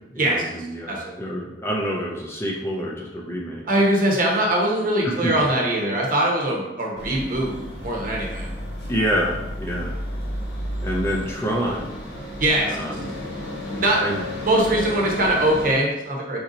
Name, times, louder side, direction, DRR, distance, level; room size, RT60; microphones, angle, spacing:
voice 1, 0.1-3.8 5.0-5.4 8.9-10.0 10.8-11.9 12.6-13.1 14.0-14.2, equal, 15° left, -2 dB, 0.5 m, -27 dB
voice 2, 0.9-1.2 3.7-8.5 12.4-12.8 13.7-14.0 14.4-16.4, right 1 dB, 50° right, -1 dB, 0.9 m, -22 dB
sound 1, 7.0-15.7, equal, 65° left, 1.1 m, -32 dB
4.3 x 2.7 x 3.8 m, 1.0 s
head